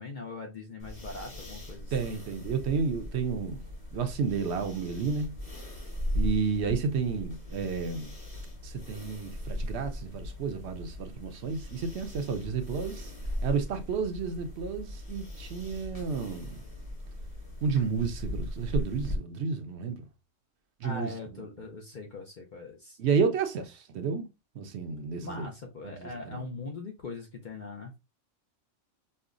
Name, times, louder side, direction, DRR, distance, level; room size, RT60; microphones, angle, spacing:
voice 1, 0.0-2.0 20.8-23.0 25.2-28.0, left 3 dB, 55° left, 0.5 m, -41 dB
sound 1, 0.8-19.2, left 1 dB, 30° left, 1.2 m, -38 dB
voice 2, 1.9-3.6 3.9-5.3 6.1-8.1 8.6-13.1 13.4-16.6 17.6-20.0 20.8-21.1 23.0-24.3 24.6-25.5 25.8-26.4, right 5 dB, 70° right, 0.8 m, -31 dB
5.4 x 2.1 x 2.4 m
omnidirectional pair, 1.3 m